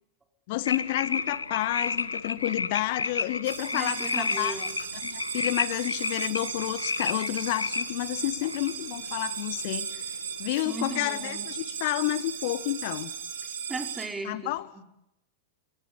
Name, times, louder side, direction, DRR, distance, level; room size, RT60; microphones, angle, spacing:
voice 1, 0.5-4.6 4.9-10.0 10.4-13.1 14.2-14.7, left 17 dB, 50° left, 15 dB, 1.7 m, -30 dB
sound 1, 0.7-10.9 11.1-11.5, left 4 dB, 75° left, 1.2 m, -33 dB
sound 2, 3.4-14.1, right 8 dB, 65° right, 4.9 m, -37 dB
voice 2, 3.7-4.7 10.6-11.5 13.7-14.8, right 3 dB, 15° right, 4 dB, 4.7 m, -37 dB
28.5 x 22.5 x 8.7 m, 0.83 s
figure-of-eight pair, 90°, 0 cm